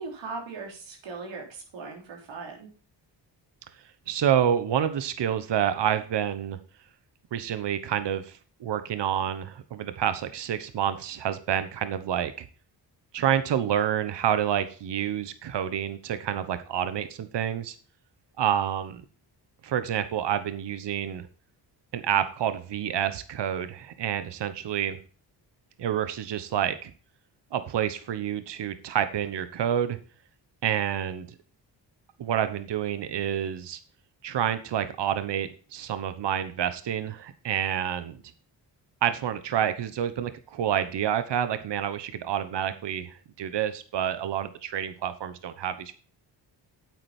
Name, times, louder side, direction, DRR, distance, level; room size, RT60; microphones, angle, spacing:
voice 1, 0.0-2.7, right 4 dB, 90° right, 1 dB, 3.6 m, -39 dB
voice 2, 4.1-6.6 7.3-12.5 13.1-17.7 18.4-19.0 19.6-21.3 21.9-25.0 25.8-26.9 27.5-30.0 30.6-31.3 32.2-33.8 34.2-38.2 39.0-46.0, right 9 dB, 70° right, 11 dB, 1.2 m, -28 dB
9.0 x 8.1 x 4.4 m, 0.39 s
cardioid pair, 80°, 44 cm